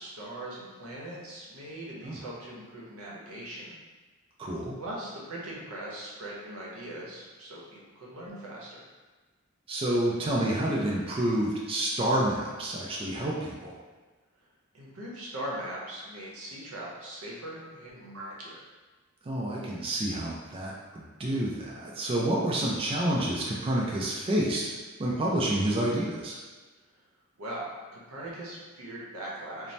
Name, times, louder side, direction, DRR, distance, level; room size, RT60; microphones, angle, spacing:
voice 1, 0.0-3.8 4.8-8.8 14.7-18.6 27.4-29.7, right 1 dB, 85° right, -5 dB, 0.7 m, -40 dB
voice 2, 4.4-4.8 9.7-13.8 19.2-24.7 25.0-26.4, right 1 dB, 25° right, -4 dB, 0.3 m, -29 dB
2.7 x 2.0 x 3.1 m, 1.3 s
head